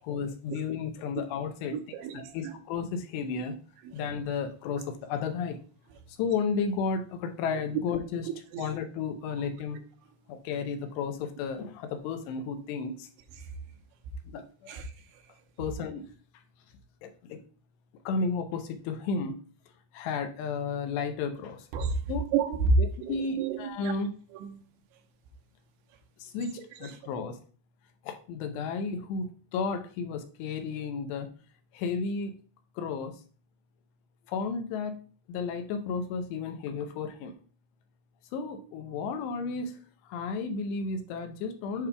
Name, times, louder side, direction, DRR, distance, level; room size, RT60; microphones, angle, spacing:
voice 1, 0.0-1.8 2.1-3.6 3.9-5.6 6.2-8.3 8.6-9.8 10.3-13.1 14.3-14.8 15.6-16.1 17.0-17.4 18.1-19.4 19.9-21.7 22.1-22.2 22.8-24.1 26.2-27.4 28.0-31.3 31.7-32.4 32.8-33.1 34.3-35.0 35.3-37.3 38.3-39.7 40.0-41.9, left 5 dB, 80° left, 2.8 m, -33 dB
voice 2, 1.7-2.5 3.8-3.9 8.5-8.7 13.4-13.5 14.7-14.9 21.7-22.0 22.3-22.7 23.0-23.9 24.3-24.6 26.8-26.9, right 7 dB, 90° right, 3.1 m, -32 dB
8.1 x 5.3 x 2.3 m
omnidirectional pair, 5.1 m